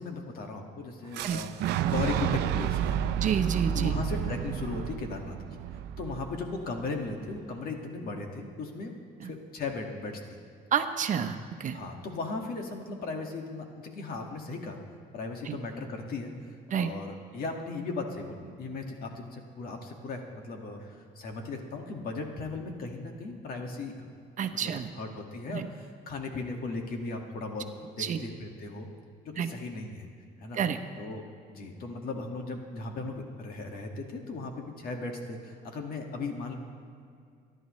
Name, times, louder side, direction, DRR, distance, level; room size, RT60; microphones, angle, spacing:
voice 1, 0.0-3.1 3.7-5.4 6.0-8.9 9.2-10.4 11.1-11.3 11.7-14.8 15.1-16.3 16.7-23.9 24.5-28.9 29.2-30.1 30.4-30.6 31.0-36.5, left 3 dB, 60° left, 2 dB, 2.0 m, -37 dB
Fire / Explosion, 1.1-7.0, right 10 dB, 85° right, 0.6 m, -31 dB
voice 2, 3.2-4.0 10.7-11.8 15.5-15.6 16.7-16.9 24.4-24.9 25.5-25.7 28.0-28.2 29.4-29.5 30.5-30.8, right 7 dB, 50° right, 7 dB, 0.9 m, -29 dB
25.0 x 11.0 x 3.2 m, 2.3 s
cardioid pair, 110°, 17 cm